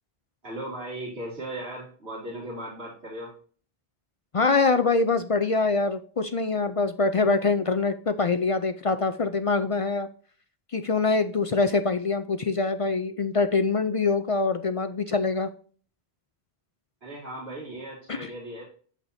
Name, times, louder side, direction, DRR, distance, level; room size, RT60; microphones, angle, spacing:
voice 1, 0.4-3.3 17.0-18.6, right 1 dB, 85° right, -5 dB, 2.6 m, -37 dB
voice 2, 4.3-10.1 10.7-15.5 18.1-18.3, left 4 dB, 45° left, 10 dB, 0.4 m, -24 dB
8.2 x 7.4 x 2.7 m, 0.43 s
omnidirectional pair, 1.0 m